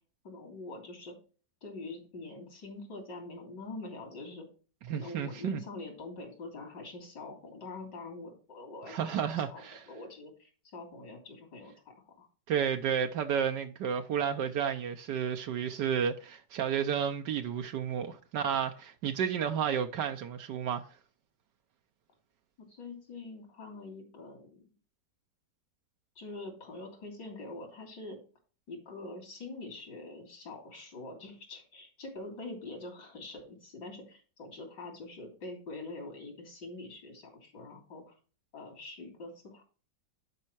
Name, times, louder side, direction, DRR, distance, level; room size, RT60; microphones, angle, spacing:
voice 1, 0.2-1.2 1.6-4.5 4.9-9.2 9.5-12.3 22.6-24.7 26.2-28.2 28.7-38.2 38.5-39.6, left 2 dB, 80° left, 3.9 m, -45 dB
voice 2, 4.9-5.6 8.9-9.8 12.5-20.9, right 8 dB, 75° right, 1.4 m, -31 dB
11.0 x 5.5 x 4.5 m
omnidirectional pair, 1.9 m